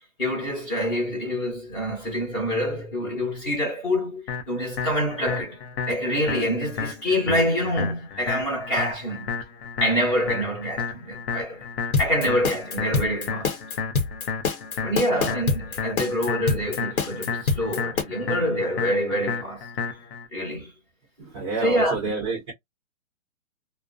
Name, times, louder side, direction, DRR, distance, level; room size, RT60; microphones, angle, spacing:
voice 1, 0.2-5.6 5.9-9.3 9.8-11.6 12.0-13.6 14.8-19.7 20.3-20.7 21.6-22.0, equal, 15° left, 0.9 m, -26 dB
sound 1, 4.3-20.3, left 6 dB, 50° left, 0.6 m, -32 dB
sound 2, 11.9-18.0, left 4 dB, 90° left, 1.0 m, -25 dB
voice 2, 21.2-22.5, right 4 dB, 20° right, 0.5 m, -29 dB
2.3 x 2.1 x 2.4 m
hypercardioid pair, 160°, 41 cm